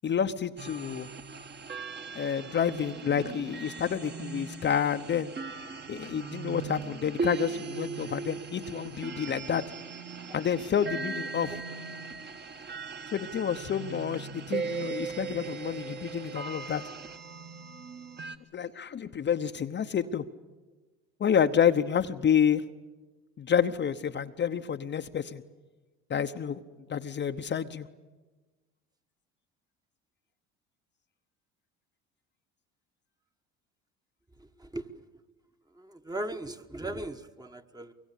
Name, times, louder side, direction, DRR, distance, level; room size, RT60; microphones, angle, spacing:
voice 1, 0.0-1.1 2.1-5.3 5.9-9.6 10.3-11.5 13.1-16.8 18.5-20.2 21.2-22.6 23.4-25.4 26.1-26.6 26.9-27.9, left 8 dB, 35° left, 7 dB, 0.9 m, -29 dB
sound 1, 0.6-18.4, right 5 dB, 35° right, 1.6 m, -39 dB
voice 2, 34.6-35.1 35.8-37.9, right 1 dB, 10° right, 7 dB, 1.3 m, -38 dB
23.5 x 23.0 x 8.4 m, 1.2 s
supercardioid pair, 90°, 32 cm